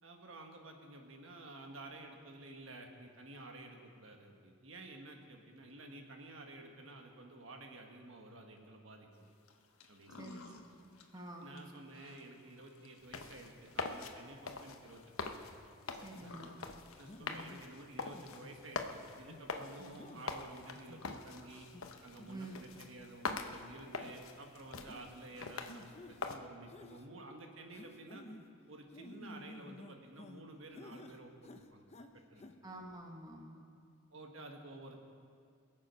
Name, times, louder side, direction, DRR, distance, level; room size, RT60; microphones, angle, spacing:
voice 1, 0.0-9.3 9.9-10.3 11.4-15.4 16.0-16.3 17.0-21.7 22.0-28.2 28.7-31.9 32.1-32.5 34.1-35.0, right 2 dB, 65° right, 3 dB, 1.4 m, -52 dB
sound 1, 9.1-25.7, left 3 dB, 90° left, 1.1 m, -61 dB
voice 2, 10.8-11.6 16.0-16.6 19.8-20.0 22.3-22.7 32.6-33.6, right 1 dB, 15° right, 0 dB, 1.1 m, -48 dB
sound 2, 13.0-26.4, left 4 dB, 70° left, 0.9 m, -44 dB
sound 3, 16.2-16.4 17.1-17.6 18.1-18.6 19.2-19.4 20.0-20.2 20.7-21.2 21.7-21.8 22.2-22.4 22.7-22.9 23.3-23.6 24.0-24.1 24.9-25.0 25.7-26.2 26.7-27.1 27.7-28.4 28.9-30.4 30.7-31.2 31.4-32.1 32.4-32.5, left 2 dB, 30° left, 0.6 m, -53 dB
22.0 x 7.5 x 5.4 m, 2.4 s
head